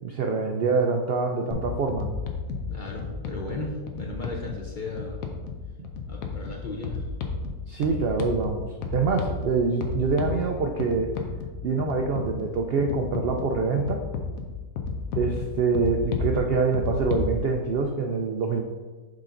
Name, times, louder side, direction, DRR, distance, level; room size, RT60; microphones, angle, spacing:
voice 1, 0.0-2.1 5.8-5.9 7.7-11.1 11.6-14.0 15.2-18.6, right 4 dB, 90° right, 3 dB, 0.5 m, -25 dB
sound 1, 1.5-17.4, left 4 dB, 70° left, 1.1 m, -33 dB
voice 2, 2.7-5.2 6.1-7.1, left 2 dB, 45° left, -1 dB, 0.6 m, -35 dB
6.6 x 4.0 x 3.8 m, 1.4 s
omnidirectional pair, 1.6 m